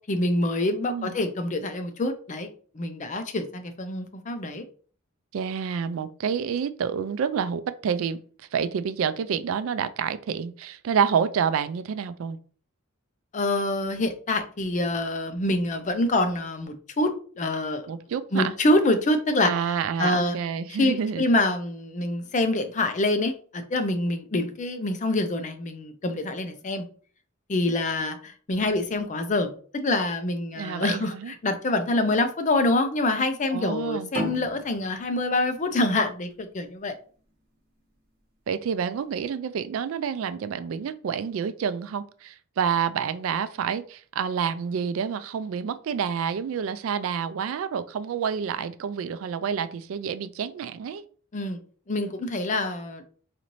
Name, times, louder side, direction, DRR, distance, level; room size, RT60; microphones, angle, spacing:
voice 1, 0.1-2.5 2.7-4.6 13.3-17.9 18.3-19.5 20.0-20.4 20.8-26.8 27.5-36.9 51.3-51.6 51.9-53.0, left 2 dB, 35° left, 8 dB, 0.5 m, -26 dB
voice 2, 0.8-1.2 5.3-12.4 17.9-18.5 19.4-21.2 30.5-31.3 33.5-34.1 38.5-51.0, right 7 dB, 70° right, 13 dB, 0.3 m, -28 dB
sound 1, 34.1-37.3, right 1 dB, 50° right, 1.2 m, -36 dB
4.1 x 2.6 x 3.0 m, 0.43 s
head